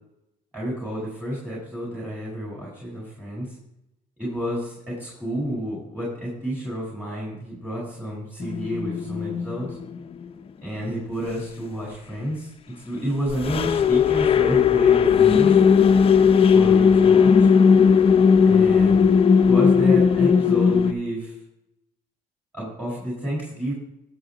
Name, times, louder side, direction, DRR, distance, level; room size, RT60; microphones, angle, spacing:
voice 1, 0.5-3.5 4.2-9.8 10.6-15.6 16.5-17.5 18.4-19.0 19.4-21.3 22.5-23.7, equal, 5° right, -5 dB, 4.5 m, -30 dB
sound 1, 8.4-10.2 13.3-20.9, left 6 dB, 35° left, 0.6 m, -17 dB
19.0 x 6.9 x 2.9 m, 0.82 s
cardioid pair, 110°, 17 cm